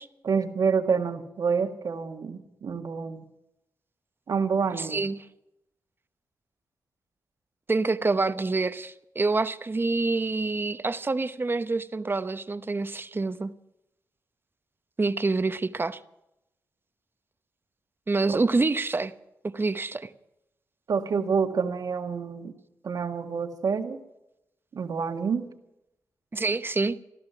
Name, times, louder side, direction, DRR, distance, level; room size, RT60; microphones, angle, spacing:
voice 1, 0.3-3.3 4.3-5.0 18.3-18.4 20.9-22.6 22.8-24.0 24.7-25.5, right 5 dB, 65° right, 1.7 m, -27 dB
voice 2, 4.8-5.2 7.7-13.5 15.0-16.0 18.1-19.1 19.4-20.1 26.3-27.0, right 3 dB, 30° right, 0.9 m, -27 dB
15.5 x 12.5 x 7.1 m
cardioid pair, 55°, 7 cm